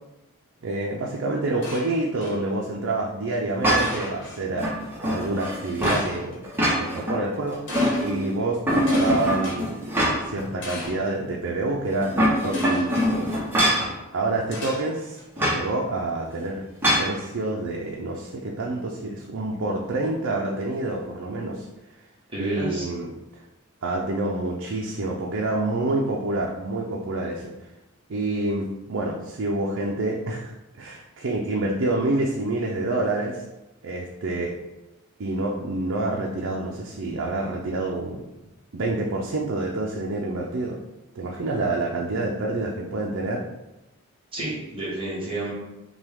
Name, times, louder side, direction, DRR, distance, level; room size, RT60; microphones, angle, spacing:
voice 1, 0.6-7.6 8.0-9.9 10.3-13.3 14.1-16.6 17.0-21.7 22.4-23.1 23.8-27.5 28.1-33.4 33.8-34.6 35.2-38.2 38.7-40.8 41.2-43.4, right 2 dB, 65° right, -1 dB, 0.5 m, -27 dB
sound 1, 1.6-2.4 3.8-4.4 5.8-6.4 7.7-8.0 8.9-9.6 10.6-11.1 12.5-13.1 14.5-15.2, left 2 dB, 60° left, 1.2 m, -37 dB
sound 2, 3.6-4.1 4.6-6.1 6.4-7.2 7.5-8.3 8.7-10.4 10.8-10.9 11.9-13.9 15.4-15.6 16.8-17.1, equal, 10° right, 0.9 m, -23 dB
voice 2, 22.3-22.9 44.3-45.5, right 2 dB, 25° right, -7 dB, 1.3 m, -30 dB
5.9 x 2.3 x 3.5 m, 0.99 s
head